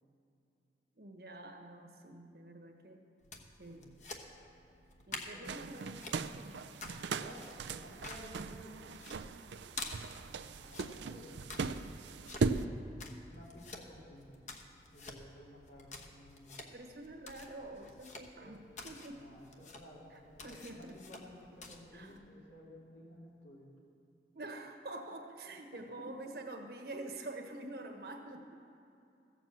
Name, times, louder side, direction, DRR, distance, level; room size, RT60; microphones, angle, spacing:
voice 1, 0.9-3.0 3.6-4.0 5.1-6.6 16.7-19.2 20.1-21.0 21.9-22.2 24.3-28.6, right 2 dB, 60° right, 4 dB, 1.2 m, -47 dB
sound 1, 3.2-22.2, left 3 dB, 40° left, 1.1 m, -50 dB
sound 2, 5.5-12.7, right 4 dB, 80° right, 0.5 m, -38 dB
voice 2, 7.0-8.9 10.2-11.6 13.3-14.4 14.9-16.7 18.4-18.6 19.2-23.7 25.7-26.4, equal, 80° left, -5 dB, 3.0 m, -54 dB
15.0 x 7.3 x 7.5 m, 2.7 s
head